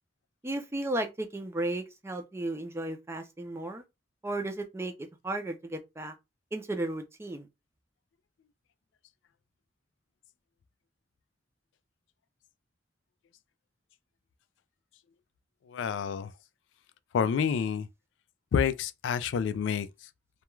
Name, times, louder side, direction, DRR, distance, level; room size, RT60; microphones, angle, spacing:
voice 1, 0.4-3.8 4.2-6.1 6.5-7.5, right 1 dB, 15° right, 0.4 m, -34 dB
voice 2, 15.7-16.3 17.1-17.9 18.5-20.1, left 7 dB, 80° left, 0.3 m, -28 dB
2.3 x 2.2 x 3.0 m
head